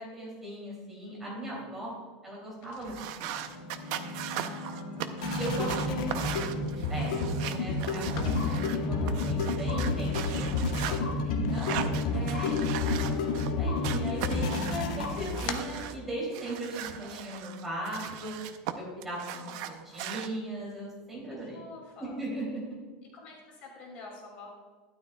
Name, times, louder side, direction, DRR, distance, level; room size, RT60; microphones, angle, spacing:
voice 1, 0.0-1.9 2.2-3.3 5.3-6.2 6.9-18.3 18.7-21.6 22.0-22.8, right 1 dB, 5° right, -5 dB, 2.9 m, -38 dB
voice 2, 1.5-1.9 4.5-5.4 13.6-13.9 19.3-19.9 21.3-22.2 23.1-24.5, left 3 dB, 35° left, -1 dB, 2.5 m, -49 dB
sound 1, 2.5-12.5 12.8-13.7 14.0-16.7, left 5 dB, 50° left, 0.9 m, -46 dB
sound 2, 2.9-8.8 9.1-11.0 11.5-13.5 13.8-16.0 16.3-18.7 19.0-20.3, right 11 dB, 45° right, 0.6 m, -38 dB
sound 3, 3.1-15.9, left 3 dB, 90° left, 1.8 m, -30 dB
13.0 x 12.0 x 2.3 m, 1.4 s
supercardioid pair, 180°, 4 cm